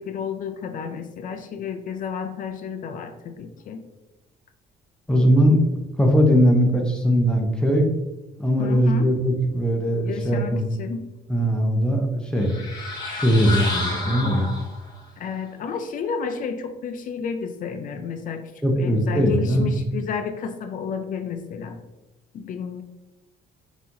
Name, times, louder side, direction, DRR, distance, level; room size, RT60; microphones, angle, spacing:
voice 1, 0.0-3.8 8.6-9.1 10.0-11.0 15.2-21.8 22.3-22.8, left 6 dB, 50° left, 8 dB, 0.5 m, -31 dB
voice 2, 5.1-5.7 6.0-7.9 8.4-10.6 11.3-12.5 13.1-14.5 18.6-19.8, equal, 5° left, 1 dB, 0.7 m, -20 dB
sound 1, 12.4-15.0, left 2 dB, 25° left, 1.0 m, -30 dB
5.5 x 3.0 x 2.6 m, 1.0 s
cardioid pair, 110°, 17 cm